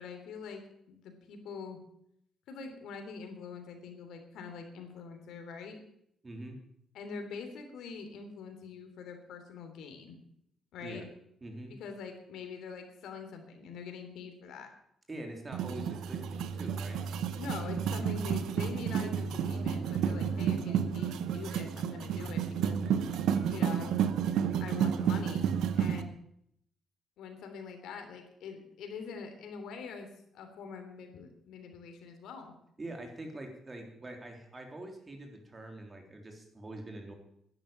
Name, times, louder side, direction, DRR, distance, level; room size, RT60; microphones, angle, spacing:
voice 1, 0.0-1.8 2.5-5.8 6.9-10.2 10.7-11.0 11.8-14.7 17.4-22.8 23.5-24.0 24.6-25.5 25.8-26.1 27.2-32.5, left 5 dB, 80° left, 5 dB, 3.2 m, -44 dB
voice 2, 6.2-6.6 10.8-11.1 11.4-11.7 15.1-17.0 22.1-22.4 32.8-37.1, right 1 dB, 25° right, 4 dB, 3.6 m, -44 dB
sound 1, 15.5-26.0, right 8 dB, 85° right, 1.0 m, -31 dB
11.0 x 10.5 x 8.8 m, 0.73 s
cardioid pair, 90°, 0 cm